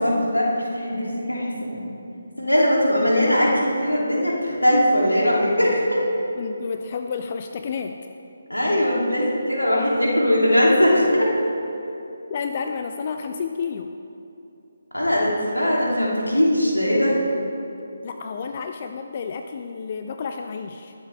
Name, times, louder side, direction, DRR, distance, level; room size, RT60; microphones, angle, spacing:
voice 1, 0.0-1.8 2.4-6.1 8.5-11.3 14.9-17.2, equal, 85° left, -3 dB, 2.7 m, -20 dB
voice 2, 6.4-8.0 12.3-13.9 18.0-20.9, left 5 dB, 35° left, 6 dB, 0.4 m, -30 dB
21.0 x 7.5 x 3.4 m, 2.8 s
figure-of-eight pair, 150°, 0 cm